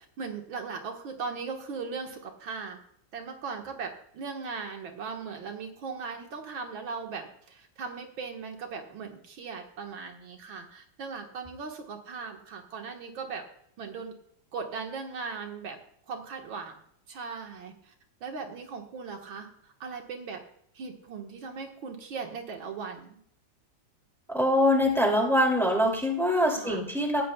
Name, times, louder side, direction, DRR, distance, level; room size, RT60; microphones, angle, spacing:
voice 1, 0.2-2.8 3.1-13.5 13.8-14.1 14.5-15.8 16.1-16.8 17.1-17.9 18.2-20.4 20.7-23.2 26.5-26.8, right 5 dB, 85° right, 3 dB, 2.3 m, -38 dB
voice 2, 24.3-27.2, left 1 dB, ahead, 0 dB, 2.5 m, -24 dB
18.0 x 14.0 x 2.3 m, 0.68 s
omnidirectional pair, 2.1 m